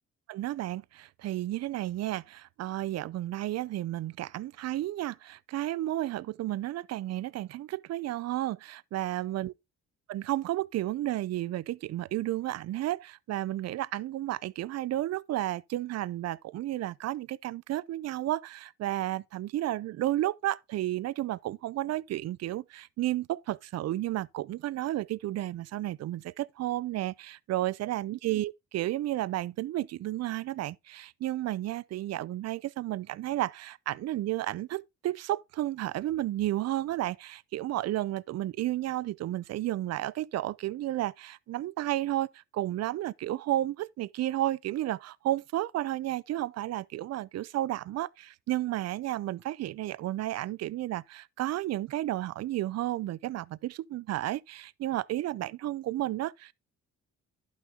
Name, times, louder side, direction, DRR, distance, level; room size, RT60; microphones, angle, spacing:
voice 1, 0.3-9.5 10.1-56.5, right 14 dB, 60° right, 0.5 m, -32 dB
11.0 x 6.2 x 3.5 m
cardioid pair, 90°, 30 cm